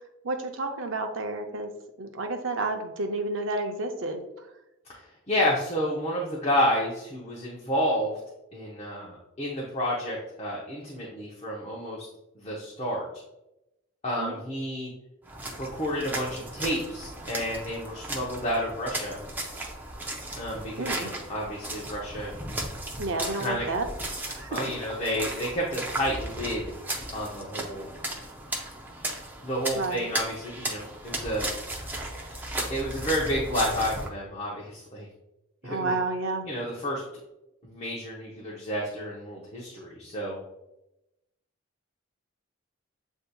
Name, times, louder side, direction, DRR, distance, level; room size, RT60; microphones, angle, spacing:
voice 1, 0.2-1.7 2.0-4.2 14.2-14.4 20.8-21.1 23.0-23.9 24.3-24.7 29.7-30.1 35.6-36.5, right 2 dB, 70° right, 5 dB, 0.6 m, -30 dB
voice 2, 5.3-8.2 8.5-12.1 12.4-13.1 14.0-14.9 15.6-19.2 20.4-22.3 23.3-23.7 24.5-26.7 27.1-27.9 29.4-31.5 32.7-35.1 35.6-35.9 36.5-37.0 37.6-40.4, equal, 30° left, -4 dB, 0.7 m, -30 dB
sound 1, 15.3-34.1, right 1 dB, 10° right, 0.5 m, -36 dB
7.8 x 2.7 x 2.3 m, 0.91 s
head